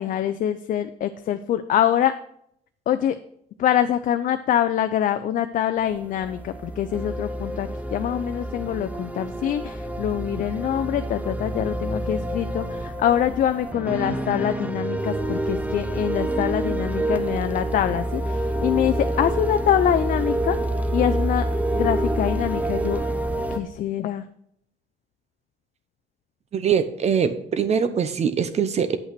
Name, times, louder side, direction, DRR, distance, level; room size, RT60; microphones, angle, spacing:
voice 1, 0.0-2.1 2.9-3.2 3.6-20.6 20.9-21.5 21.7-23.0 23.5-24.2, left 10 dB, 50° left, 10 dB, 0.5 m, -24 dB
sound 1, 5.8-23.6, right 1 dB, 10° right, 0.7 m, -27 dB
voice 2, 26.5-29.0, right 7 dB, 40° right, 11 dB, 0.7 m, -22 dB
8.2 x 5.7 x 5.9 m, 0.71 s
cardioid pair, 110°, 17 cm